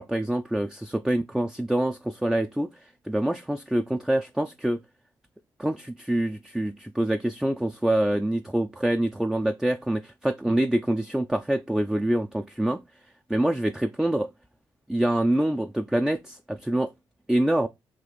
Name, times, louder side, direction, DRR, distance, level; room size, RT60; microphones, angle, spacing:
voice 1, 0.0-4.8 5.6-12.8 13.3-14.3 14.9-16.9 17.3-17.7, right 1 dB, 5° right, 0.4 m, -25 dB
4.7 x 2.4 x 3.9 m
supercardioid pair, 50°, 9 cm